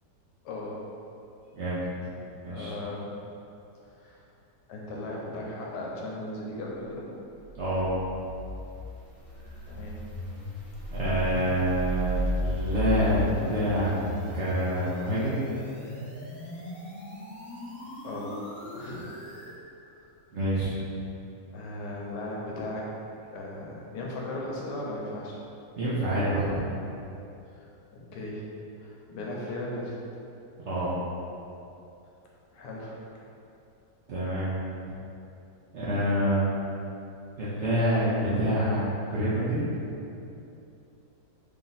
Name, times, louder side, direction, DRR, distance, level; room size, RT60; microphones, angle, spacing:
voice 1, 0.4-0.9 2.5-3.1 3.8-4.2 4.7-7.1 9.7-10.0 18.0-18.4 18.7-19.1 20.0-20.1 21.5-22.9 23.3-25.4 27.5-27.7 27.9-28.5 28.8-29.9 32.5-33.1, left 1 dB, 85° left, -3 dB, 1.3 m, -37 dB
voice 2, 1.5-1.8 2.4-2.7 7.6-7.9 10.9-13.9 14.3-15.4 20.3-20.7 25.8-26.5 30.6-30.9 34.1-34.5 35.7-36.6 37.4-38.8 39.1-39.6, equal, 60° right, -10 dB, 0.8 m, -27 dB
sound 1, 7.4-19.6, equal, 20° left, 1.2 m, -35 dB
3.4 x 2.7 x 3.9 m, 2.8 s
omnidirectional pair, 1.8 m